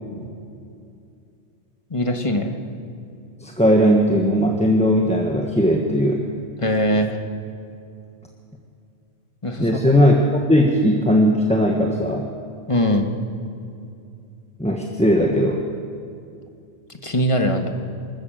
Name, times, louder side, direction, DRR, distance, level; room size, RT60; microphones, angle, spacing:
voice 1, 1.9-2.6 6.6-7.2 9.4-9.7 12.7-13.1 17.0-17.8, equal, 25° left, 5 dB, 1.6 m, -21 dB
voice 2, 3.4-6.2 9.6-10.1 10.5-12.3 14.6-15.6, equal, 5° left, 0 dB, 1.3 m, -18 dB
25.0 x 14.0 x 7.7 m, 2.5 s
omnidirectional pair, 1.2 m